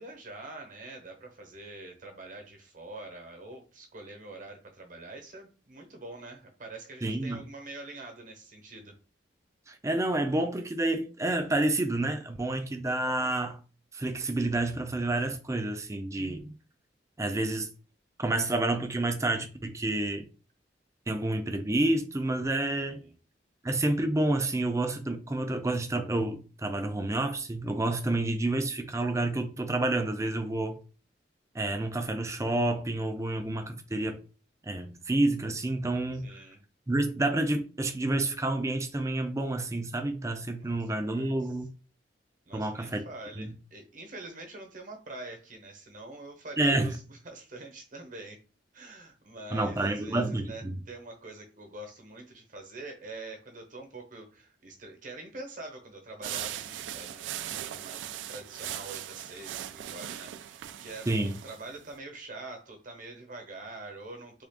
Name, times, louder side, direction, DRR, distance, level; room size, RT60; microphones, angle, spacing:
voice 1, 0.0-9.0 12.6-12.8 22.8-23.2 36.1-36.6 40.5-41.5 42.5-48.4 48.7-61.1 61.4-64.4, right 2 dB, 45° right, 0.9 m, -45 dB
voice 2, 7.0-7.4 9.7-13.6 13.9-16.5 17.2-17.7 18.2-20.3 21.1-23.0 23.6-30.8 31.5-34.2 34.6-36.2 36.9-41.7 42.5-43.0 43.4-43.5 46.6-47.0 49.5-50.8 61.1-61.3, right 2 dB, 15° right, 0.5 m, -29 dB
sound 1, 56.2-61.9, right 11 dB, 80° right, 0.3 m, -39 dB
3.4 x 2.4 x 3.5 m
head